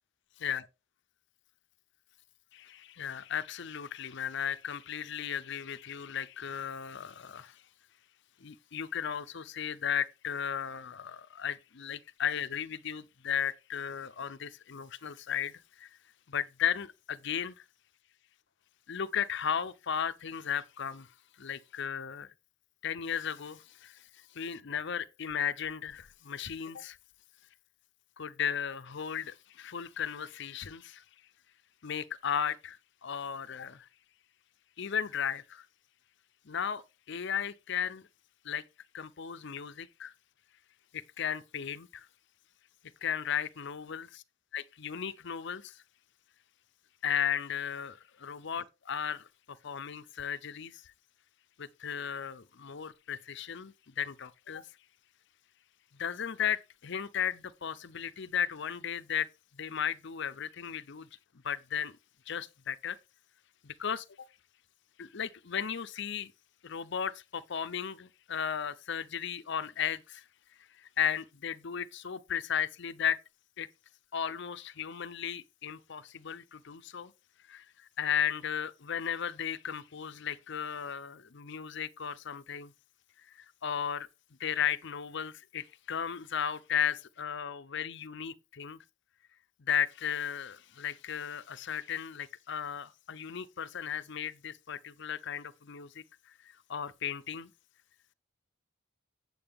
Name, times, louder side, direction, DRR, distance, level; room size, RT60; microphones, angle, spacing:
voice 1, 2.5-7.6 8.4-16.0 16.3-17.6 18.9-21.1 21.4-22.3 22.8-27.0 28.2-31.0 31.8-33.9 34.8-35.7 36.4-38.1 38.4-38.6 38.9-40.1 40.9-42.1 43.0-44.2 44.5-45.8 47.0-50.9 51.6-54.7 56.0-61.1 61.4-62.0 62.3-63.0 63.6-64.1 65.0-66.3 66.6-70.3 70.8-73.2 73.6-73.7 74.1-77.1 77.5-82.7 83.3-84.1 84.4-88.8 89.6-97.5, left 8 dB, 60° left, 0.6 m, -35 dB
8.7 x 7.7 x 3.6 m
head